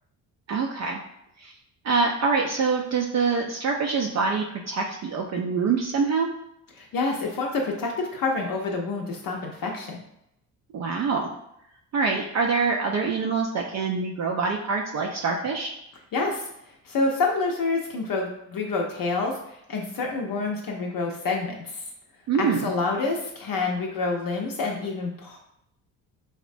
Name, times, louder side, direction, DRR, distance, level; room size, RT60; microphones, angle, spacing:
voice 1, 0.5-1.0 1.4-1.5 1.8-6.3 10.7-11.3 11.9-15.7 22.3-22.7, right 4 dB, 40° right, 0 dB, 0.4 m, -25 dB
voice 2, 6.8-10.0 16.1-16.5 16.8-19.3 19.7-21.8 22.4-25.4, left 3 dB, 50° left, 0 dB, 0.6 m, -27 dB
3.1 x 2.1 x 2.5 m, 0.79 s
hypercardioid pair, 55°, 45 cm